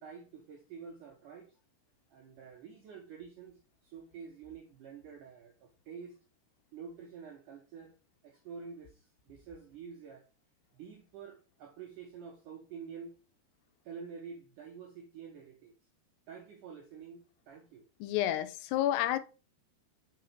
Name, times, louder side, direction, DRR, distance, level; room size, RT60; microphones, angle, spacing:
voice 1, 0.0-1.5 2.1-6.2 6.7-7.9 8.2-10.2 10.7-13.1 13.8-15.7 16.3-17.8, right 6 dB, 80° right, 1.8 m, -48 dB
voice 2, 18.0-19.2, left 12 dB, 90° left, 2.7 m, -30 dB
5.9 x 3.8 x 4.3 m
omnidirectional pair, 4.8 m